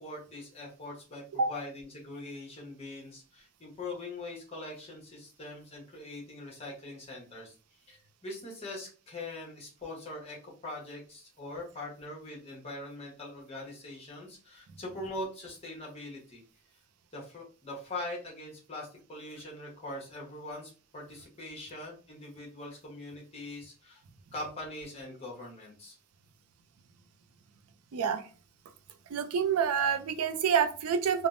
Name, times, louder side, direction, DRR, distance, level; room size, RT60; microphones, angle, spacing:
voice 1, 0.0-7.5 7.9-16.4 17.1-24.0 24.3-26.0, left 2 dB, 25° left, -2 dB, 0.9 m, -42 dB
voice 2, 27.9-28.2 29.1-31.3, right 7 dB, 75° right, 8 dB, 0.4 m, -27 dB
3.3 x 2.0 x 2.5 m, 0.36 s
head